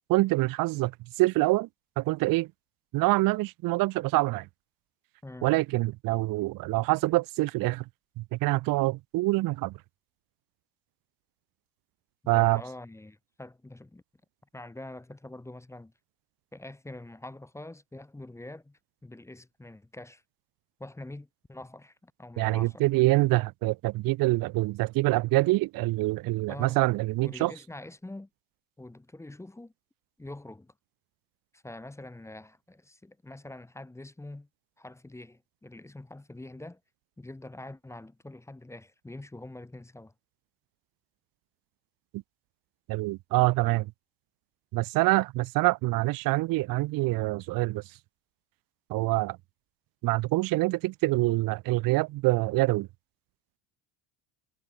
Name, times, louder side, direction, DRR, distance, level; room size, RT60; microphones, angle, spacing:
voice 1, 0.1-1.7 2.0-2.5 2.9-4.5 5.4-7.8 8.2-9.8 12.3-12.6 22.4-27.5 42.1-42.2 42.9-43.9 44.7-47.8 48.9-49.4 50.0-52.9, right 20 dB, 45° right, 0.6 m, -25 dB
voice 2, 5.2-5.5 12.2-14.0 14.5-15.9 16.5-20.2 20.8-22.9 26.5-26.8 27.2-28.3 28.8-29.7 30.2-30.7 31.5-34.5 34.8-36.8 37.2-40.1, left 2 dB, 5° left, 0.8 m, -45 dB
cardioid pair, 125°, 49 cm